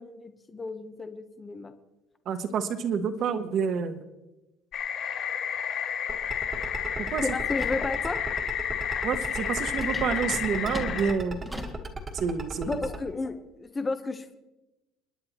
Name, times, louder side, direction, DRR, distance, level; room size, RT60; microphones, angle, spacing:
voice 1, 0.0-1.7 7.2-8.2 12.7-14.4, left 3 dB, 15° left, 8 dB, 0.8 m, -33 dB
voice 2, 2.3-4.0 7.1-7.2 9.0-11.4 12.1-12.8, right 6 dB, 40° right, 8 dB, 1.0 m, -28 dB
sound 1, 4.7-11.1, left 8 dB, 45° left, 2.6 m, -31 dB
sound 2, 6.1-13.0, right 3 dB, 20° right, 1.4 m, -36 dB
sound 3, 7.6-7.9 9.7-11.8, equal, ahead, 1.3 m, -38 dB
29.0 x 10.5 x 3.0 m, 0.98 s
cardioid pair, 175°, 0 cm